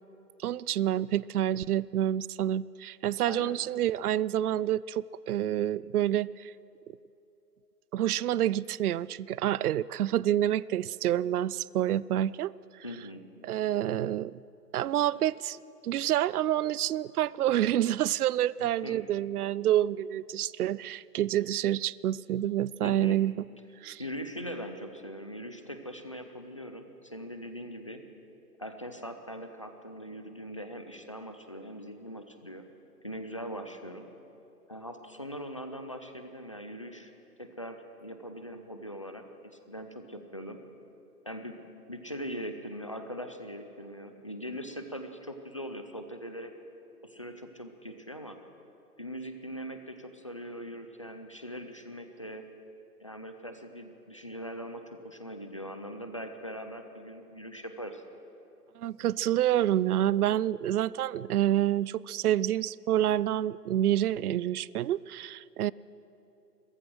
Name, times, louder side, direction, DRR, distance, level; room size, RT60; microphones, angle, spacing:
voice 1, 0.4-6.5 7.9-12.5 13.4-14.3 14.7-15.6 15.8-23.3 23.8-24.0 58.8-65.7, right 12 dB, 65° right, 21 dB, 0.5 m, -28 dB
voice 2, 3.3-3.6 12.8-13.2 18.6-19.0 22.8-23.2 24.0-28.0 28.6-32.6 33.0-34.1 34.7-37.1 37.4-40.6 41.3-41.6 41.9-46.5 47.0-48.4 49.0-52.4 53.0-58.0, equal, 20° left, 7 dB, 0.5 m, -41 dB
28.5 x 14.5 x 6.3 m, 3.0 s
hypercardioid pair, 160°, 49 cm